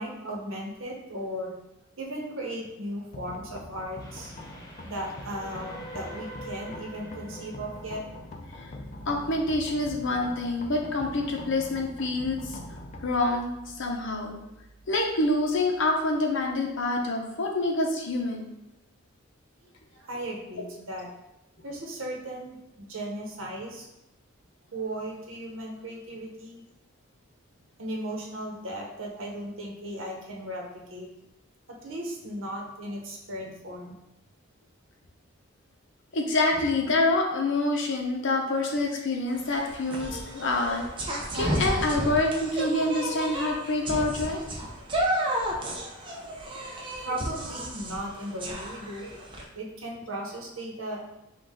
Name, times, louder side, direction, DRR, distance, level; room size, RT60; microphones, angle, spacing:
voice 1, 0.0-1.5 2.0-4.3 4.8-8.0 19.9-21.1 21.6-23.8 24.7-26.6 27.8-31.1 31.7-34.0 45.8-45.9 47.0-49.1 49.5-51.0, right 1 dB, 65° right, -1 dB, 1.0 m, -36 dB
sound 1, 3.1-17.0, left 1 dB, 35° left, 0.4 m, -44 dB
Train, 4.0-9.3, right 1 dB, 20° left, 0.8 m, -45 dB
voice 2, 9.1-12.6 13.0-13.5 13.8-14.4 14.9-18.5 36.1-40.8 41.3-44.4, left 2 dB, 60° left, 1 dB, 0.8 m, -26 dB
sound 2, 39.3-49.4, right 1 dB, 25° right, 0.6 m, -32 dB
5.5 x 2.4 x 3.6 m, 0.91 s
head